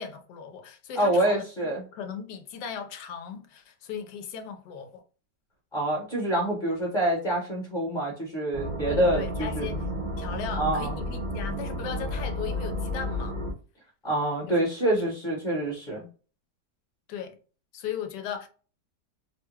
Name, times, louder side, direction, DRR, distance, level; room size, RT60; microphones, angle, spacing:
voice 1, 0.0-1.4 1.9-5.0 8.9-9.8 10.2-13.4 14.5-14.9 17.1-17.4 17.7-18.5, left 7 dB, 75° left, 1.2 m, -37 dB
voice 2, 0.9-1.8 5.7-9.7 10.6-11.0 14.0-16.1, right 1 dB, 30° left, 1.1 m, -26 dB
sound 1, 8.5-13.5, equal, 50° right, 0.5 m, -32 dB
3.2 x 2.2 x 3.0 m
omnidirectional pair, 1.9 m